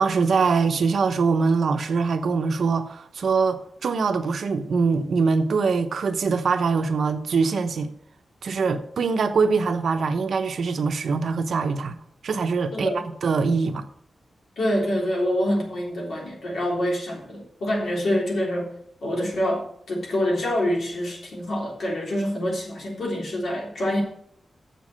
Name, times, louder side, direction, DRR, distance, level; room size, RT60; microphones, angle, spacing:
voice 1, 0.0-7.9 8.4-12.0 12.2-13.9, right 4 dB, 65° right, 0.9 m, -23 dB
voice 2, 12.7-13.0 14.6-18.7 19.0-24.0, equal, 70° left, 3.4 m, -26 dB
7.5 x 6.9 x 7.4 m
wide cardioid pair, 170°, 0 cm